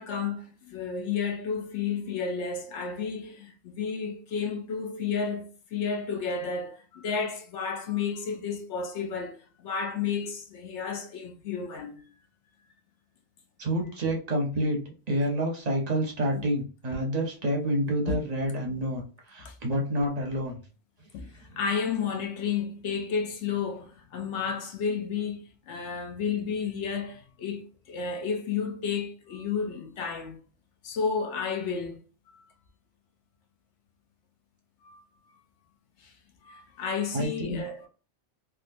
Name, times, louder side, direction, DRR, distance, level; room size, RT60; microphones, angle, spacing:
voice 1, 0.0-12.1 16.4-16.5 18.1-18.2 19.4-19.6 21.1-30.4 30.8-32.0 32.3-32.5 34.8-35.0 36.0-36.1 36.4-37.9, left 6 dB, 65° left, 0.8 m, -32 dB
voice 2, 13.6-14.8 15.1-20.6 21.5-21.6 37.1-37.6, right 1 dB, 35° right, 0.7 m, -28 dB
3.5 x 2.4 x 2.6 m
omnidirectional pair, 1.4 m